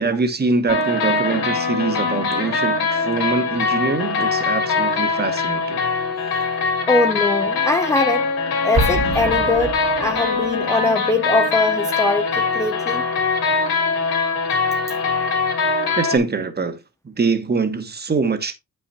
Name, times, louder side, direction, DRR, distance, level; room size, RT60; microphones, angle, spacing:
voice 1, 0.0-5.8 16.0-16.8 17.0-18.5, right 4 dB, 25° right, 1.2 m, -23 dB
sound 1, 0.7-16.2, left 4 dB, 80° left, 2.7 m, -22 dB
voice 2, 6.9-8.3 8.6-13.0, left 3 dB, 10° left, 0.4 m, -21 dB
Explosion, 8.7-10.5, right 3 dB, 70° right, 2.0 m, -25 dB
9.1 x 5.7 x 2.7 m
cardioid pair, 100°, 37 cm